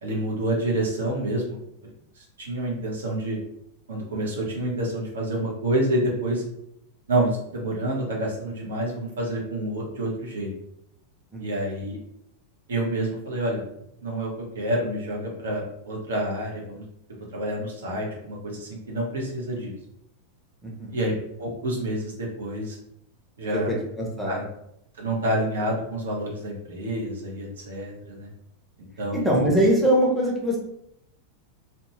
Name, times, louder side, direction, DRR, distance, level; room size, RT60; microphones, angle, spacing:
voice 1, 0.0-1.6 2.2-3.4 3.9-6.4 7.1-10.5 11.4-12.0 12.7-13.6 14.0-16.8 17.3-19.7 20.9-22.8 23.4-23.7 24.2-24.4 24.9-28.3 29.0-29.3, right 1 dB, 65° right, -2 dB, 0.8 m, -28 dB
voice 2, 20.6-20.9 23.5-24.4 29.1-30.6, equal, ahead, -4 dB, 0.7 m, -22 dB
2.6 x 2.1 x 3.0 m, 0.77 s
figure-of-eight pair, 90°, 0 cm